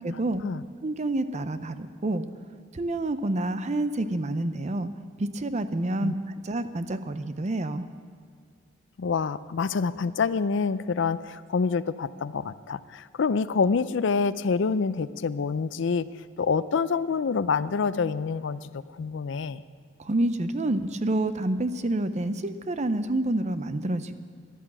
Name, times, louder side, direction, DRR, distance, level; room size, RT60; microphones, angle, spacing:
voice 1, 0.0-0.5 0.8-2.2 2.7-4.9 5.2-7.9 20.0-24.2, right 1 dB, 35° right, 11 dB, 0.6 m, -28 dB
voice 2, 9.0-16.0 16.4-19.6, left 5 dB, 65° left, 15 dB, 0.4 m, -27 dB
13.5 x 11.0 x 7.1 m, 2.1 s
head